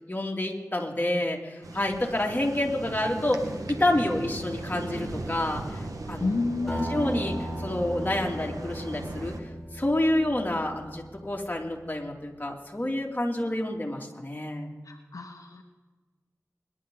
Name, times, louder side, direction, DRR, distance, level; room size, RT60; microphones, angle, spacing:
voice 1, 0.1-6.3 6.7-9.3 9.7-14.7, left 1 dB, 30° left, 0 dB, 2.7 m, -28 dB
sound 1, 1.6-9.4, right 2 dB, 90° right, 1.5 m, -38 dB
voice 2, 6.2-6.9 14.8-15.6, left 3 dB, 75° left, 3 dB, 1.1 m, -30 dB
Acoustic guitar, 6.7-11.5, equal, 5° left, 5.2 m, -37 dB
22.0 x 11.0 x 3.9 m, 1.3 s
wide cardioid pair, 45°, 6 cm